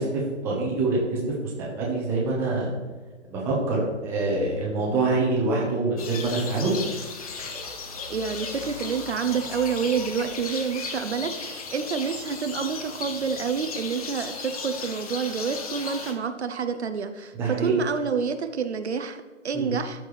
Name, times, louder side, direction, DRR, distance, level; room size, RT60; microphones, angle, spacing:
voice 1, 0.0-2.7 3.3-6.7 17.3-17.7 19.5-19.7, right 3 dB, 5° right, -4 dB, 0.9 m, -25 dB
sound 1, 6.0-16.1, left 4 dB, 30° left, 0.8 m, -36 dB
voice 2, 8.1-20.0, right 6 dB, 65° right, 9 dB, 0.8 m, -28 dB
13.0 x 4.5 x 3.2 m, 1.3 s
hypercardioid pair, 155°, 37 cm